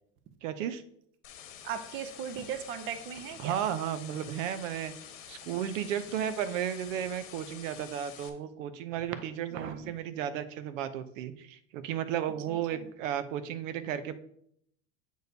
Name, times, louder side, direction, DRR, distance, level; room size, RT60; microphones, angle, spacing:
voice 1, 0.4-0.8 3.4-4.9 5.3-14.2, right 10 dB, 80° right, 11 dB, 0.7 m, -34 dB
sound 1, 1.2-8.3, left 9 dB, 90° left, 1.3 m, -48 dB
voice 2, 1.6-3.6 9.5-9.9 12.5-12.9, right 8 dB, 30° right, 10 dB, 0.6 m, -38 dB
8.1 x 6.4 x 2.7 m, 0.69 s
supercardioid pair, 145°, 38 cm